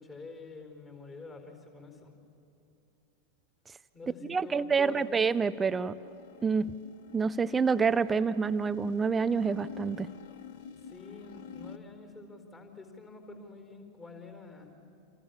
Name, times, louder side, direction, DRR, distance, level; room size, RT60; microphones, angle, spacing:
voice 1, 0.0-2.1 3.9-5.2 10.8-14.8, left 3 dB, 20° left, 4 dB, 4.3 m, -47 dB
voice 2, 4.3-5.9 6.4-6.7 7.1-10.1, right 5 dB, 15° right, 16 dB, 0.5 m, -27 dB
sound 1, 4.7-11.8, left 6 dB, 50° left, 1.2 m, -48 dB
28.5 x 28.0 x 7.2 m, 2.8 s
figure-of-eight pair, 90°, 0 cm